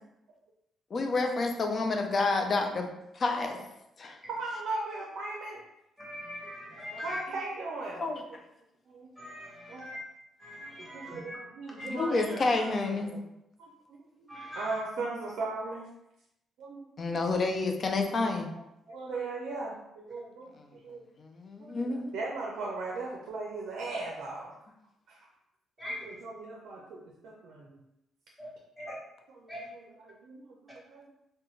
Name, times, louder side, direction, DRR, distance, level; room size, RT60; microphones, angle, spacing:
voice 1, 0.9-2.9 3.2-3.6 4.0-4.2 7.9-8.2 11.9-13.1 17.0-18.5 21.2-22.1, left 3 dB, 45° left, 4 dB, 0.4 m, -29 dB
voice 2, 4.4-5.6 6.9-8.0 8.9-9.1 9.7-9.8 10.8-13.3 13.6-15.8 16.6-16.8 18.2-18.3 18.9-21.0 21.6-24.5 25.1-25.3 26.0-27.8 29.3-31.1, right 3 dB, 75° right, -2 dB, 0.4 m, -38 dB
voice 3, 6.0-7.2 9.2-10.0 10.4-11.4 11.8-11.9 14.3-14.8 25.8-26.0 28.4-28.5 28.8-29.0 29.5-29.6, left 1 dB, ahead, -5 dB, 0.9 m, -41 dB
2.3 x 2.2 x 3.0 m, 0.85 s
cardioid pair, 90°, 0 cm